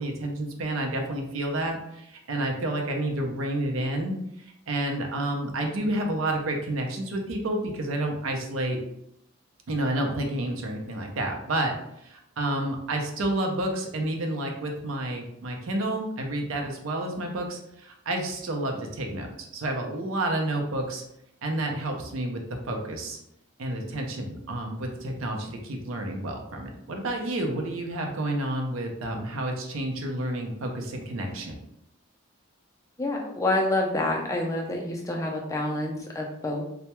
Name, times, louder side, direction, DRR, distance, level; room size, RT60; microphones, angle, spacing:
voice 1, 0.0-8.8 9.7-21.0 21.4-23.2 23.6-31.6, right 1 dB, 75° right, 2 dB, 0.5 m, -30 dB
voice 2, 33.0-36.6, left 2 dB, 15° left, 0 dB, 0.3 m, -27 dB
2.2 x 2.1 x 2.9 m, 0.77 s
head